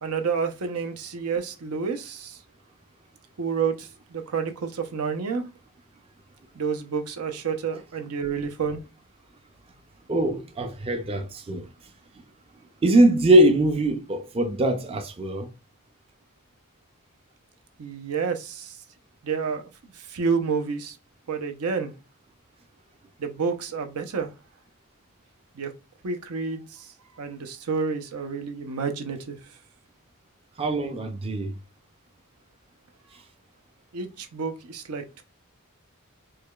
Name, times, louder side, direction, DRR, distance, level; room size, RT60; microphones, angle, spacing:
voice 1, 0.0-2.4 3.4-5.5 6.5-8.8 17.8-18.8 19.2-21.0 21.3-21.9 23.2-24.3 25.5-25.7 26.0-29.4 33.9-35.2, right 5 dB, 80° right, 0.6 m, -29 dB
voice 2, 10.1-11.7 12.8-15.5 30.6-31.5, right 1 dB, 25° right, 0.4 m, -22 dB
4.7 x 2.3 x 2.3 m
head